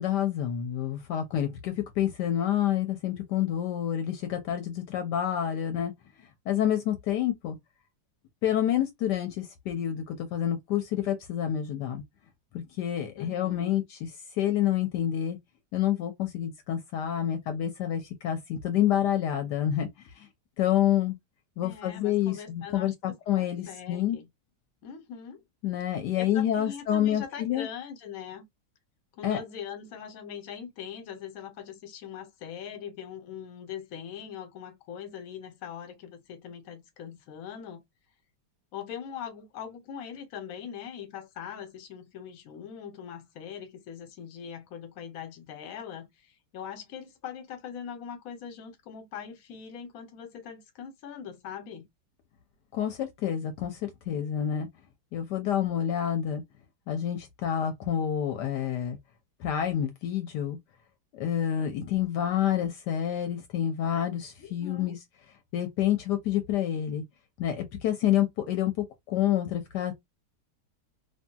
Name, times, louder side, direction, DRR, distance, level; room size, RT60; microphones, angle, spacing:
voice 1, 0.0-5.9 6.5-7.6 8.4-12.0 12.5-14.1 14.4-15.4 15.7-19.9 20.2-20.3 20.6-21.2 21.6-24.2 25.6-27.7 29.2-29.4 52.7-54.7 55.1-56.4 56.9-59.0 59.4-60.6 61.1-65.0 65.5-67.0 67.4-70.0, left 10 dB, 75° left, 1.2 m, -28 dB
voice 2, 13.2-13.8 21.6-24.3 24.8-25.4 26.2-28.5 29.2-37.8 38.7-51.9 64.4-65.0, left 8 dB, 60° left, 1.1 m, -41 dB
2.8 x 2.7 x 2.2 m
omnidirectional pair, 1.9 m